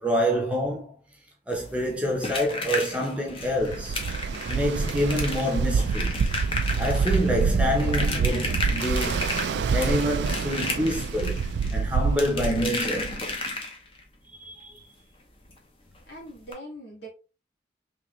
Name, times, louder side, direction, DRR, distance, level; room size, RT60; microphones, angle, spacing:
voice 1, 0.0-0.9 1.5-4.0 4.5-6.2 6.8-9.4 9.7-11.4 11.7-13.2 14.4-14.8, equal, 5° right, 0.7 m, -27 dB
sound 1, 1.5-14.0 15.5-15.6 15.9-16.0 16.4-16.5, left 3 dB, 30° left, 0.7 m, -33 dB
Ocean, 3.4-13.3, right 5 dB, 75° right, 0.3 m, -27 dB
voice 2, 16.1-17.1, right 1 dB, 80° left, 1.8 m, -41 dB
3.8 x 2.9 x 3.0 m
head